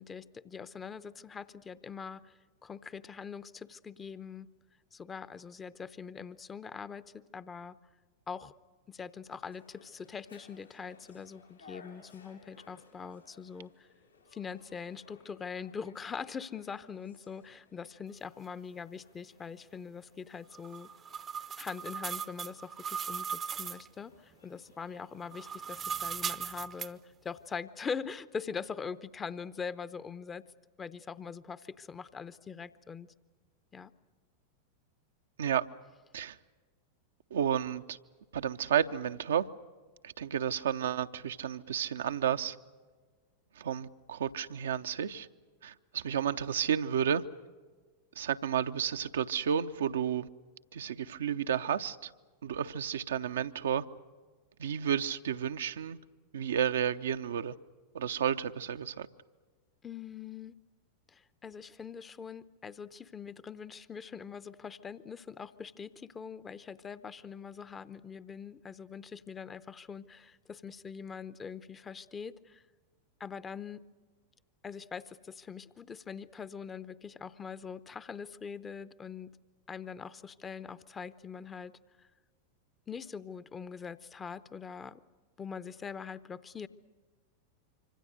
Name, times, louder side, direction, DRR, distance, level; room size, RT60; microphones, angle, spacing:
voice 1, 0.0-4.5 4.9-7.8 8.3-8.5 8.9-13.9 14.3-20.9 21.6-30.5 30.8-33.1 33.7-33.9 59.8-60.6 61.1-72.6 73.2-73.8 74.6-79.3 79.7-82.1 82.9-85.0 85.4-86.7, left 6 dB, 20° left, 0.8 m, -43 dB
sound 1, 9.3-25.6, left 4 dB, 85° left, 5.6 m, -61 dB
sound 2, 20.5-23.9 25.2-26.9, right 7 dB, 25° right, 0.7 m, -38 dB
voice 2, 37.3-38.0 38.3-39.5 40.0-42.6 43.6-45.3 45.6-47.2 48.2-50.3 50.7-52.1 52.4-53.8 54.6-56.0 56.3-57.5 57.9-59.1, right 8 dB, 65° right, 0.7 m, -31 dB
26.0 x 25.5 x 6.5 m
figure-of-eight pair, 90°, 0 cm